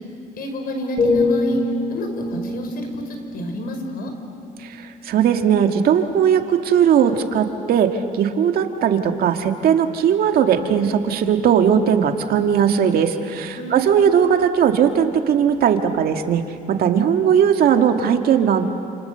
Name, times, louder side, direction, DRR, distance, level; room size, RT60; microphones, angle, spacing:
voice 1, 0.3-1.6 1.9-4.1 13.6-14.0, equal, 60° left, 5 dB, 5.4 m, -29 dB
sound 1, 1.0-4.9 5.4-5.7, left 3 dB, 35° left, 3.7 m, -25 dB
voice 2, 4.6-16.4 16.7-18.7, right 8 dB, 65° right, 5 dB, 2.0 m, -18 dB
29.5 x 28.0 x 6.9 m, 2.4 s
cardioid pair, 110°, 17 cm